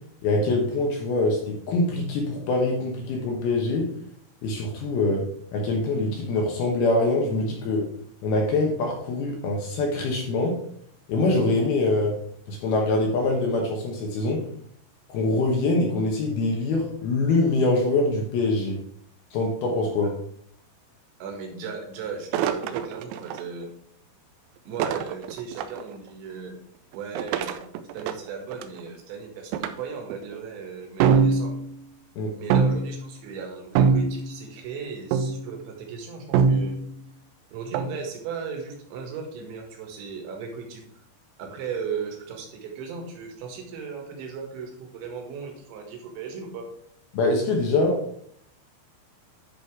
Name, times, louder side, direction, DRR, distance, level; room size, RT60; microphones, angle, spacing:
voice 1, 0.2-3.9 4.4-7.9 8.2-10.6 11.1-12.2 12.5-14.4 15.1-18.8 19.3-20.1 32.2-32.3 47.1-48.0, left 2 dB, 70° left, 0 dB, 2.5 m, -24 dB
voice 2, 21.2-23.7 24.7-26.5 26.9-27.6 27.9-31.6 32.4-36.7 37.5-40.8 41.4-46.7, right 5 dB, 70° right, 2 dB, 3.7 m, -36 dB
Bashes and clangs various, 22.3-23.4 24.8-25.8 27.1-28.8 29.5-29.7 30.1-30.4 31.0-31.7 32.5-33.0 33.8-34.4 35.1-35.5 36.3-36.9 37.7-38.0, right 5 dB, 85° right, 2.6 m, -23 dB
10.5 x 4.2 x 4.7 m, 0.64 s
omnidirectional pair, 5.7 m